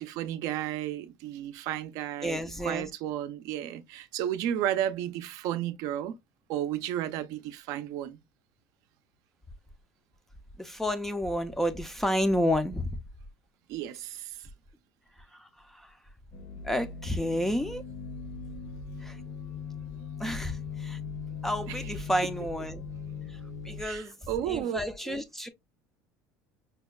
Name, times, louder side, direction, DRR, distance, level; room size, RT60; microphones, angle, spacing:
voice 1, 0.0-6.1 6.5-8.2 13.7-14.3 21.7-21.8 23.8-24.8 25.1-25.2, right 11 dB, 65° right, 0.5 m, -33 dB
voice 2, 2.2-2.9 10.6-12.9 15.7-15.9 16.6-17.8 19.0-19.2 20.2-21.0 21.4-22.9 23.6-24.1 24.4-25.5, equal, 5° left, 0.4 m, -30 dB
sound 1, 16.3-23.8, left 5 dB, 45° left, 0.7 m, -40 dB
5.3 x 2.1 x 2.3 m
cardioid pair, 140°, 7 cm